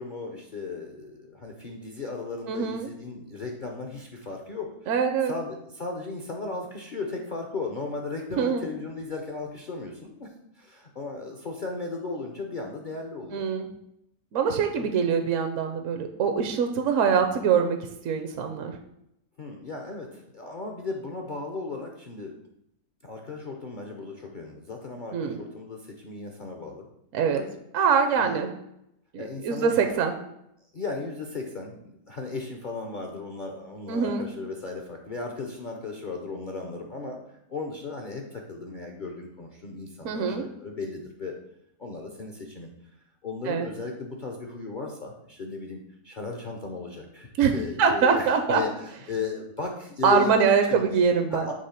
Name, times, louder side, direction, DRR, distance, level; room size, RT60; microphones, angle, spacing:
voice 1, 0.0-4.9 5.3-10.3 10.6-13.4 14.7-14.9 19.4-22.4 23.0-26.9 27.2-27.5 28.2-28.4 29.2-30.0 30.7-37.2 37.5-41.3 41.8-42.7 43.2-50.8 51.3-51.5, left 3 dB, 55° left, 1 dB, 0.5 m, -36 dB
voice 2, 2.5-2.9 4.9-5.3 8.4-8.7 13.3-13.7 14.3-17.8 18.0-18.8 25.1-25.4 27.1-27.5 27.7-28.5 29.1-30.1 33.9-34.3 40.0-40.4 43.5-43.7 47.4-48.6 50.0-51.5, right 6 dB, 65° right, 5 dB, 0.8 m, -24 dB
6.6 x 3.2 x 5.6 m, 0.80 s
omnidirectional pair, 1.7 m